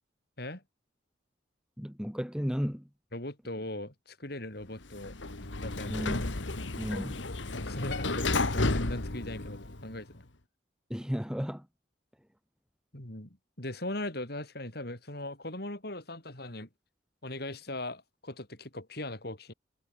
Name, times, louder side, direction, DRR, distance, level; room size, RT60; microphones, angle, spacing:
voice 1, 1.8-2.8 5.9-6.3 6.8-7.2 10.9-11.6, equal, 5° right, 2.7 m, -34 dB
voice 2, 3.1-5.1 5.5-6.1 7.6-10.2 12.9-16.7 17.2-19.5, left 1 dB, 55° left, 4.9 m, -39 dB
Sliding door, 4.8-10.0, left 2 dB, 75° left, 1.8 m, -32 dB
head